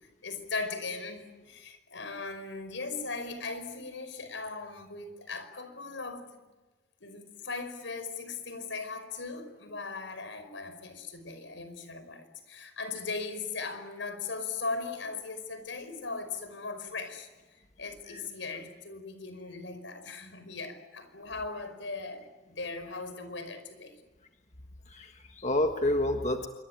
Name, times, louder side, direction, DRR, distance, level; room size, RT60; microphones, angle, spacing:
voice 1, 0.2-6.4 7.0-24.0, left 4 dB, 80° left, 10 dB, 5.2 m, -38 dB
voice 2, 24.9-26.5, left 1 dB, 35° left, 4 dB, 1.5 m, -29 dB
27.0 x 25.0 x 8.9 m, 1.2 s
head